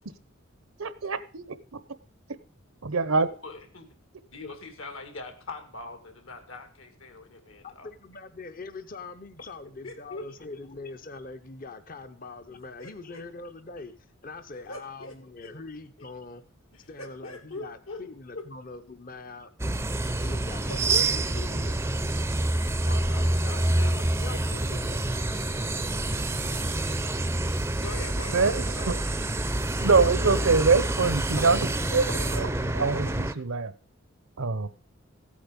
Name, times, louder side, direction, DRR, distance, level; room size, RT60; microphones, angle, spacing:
voice 1, 0.8-1.6 2.8-3.3 28.2-29.0 29.8-33.7 34.4-34.7, right 4 dB, 80° right, 15 dB, 0.9 m, -25 dB
voice 2, 3.4-3.9 4.3-7.9 9.8-10.3 12.8-13.2 14.7-15.2 15.4-15.5 16.0-16.1 16.7-18.0 18.3-18.4 20.5-21.5 22.8-25.0 27.7-29.0, left 2 dB, 75° left, 7 dB, 2.3 m, -42 dB
voice 3, 7.6-13.9 14.2-16.4 16.9-19.5 20.2-21.9, left 3 dB, 40° left, 11 dB, 0.8 m, -42 dB
sound 1, 19.6-33.3, right 2 dB, 10° right, 0.5 m, -27 dB
15.0 x 8.6 x 5.2 m, 0.37 s
head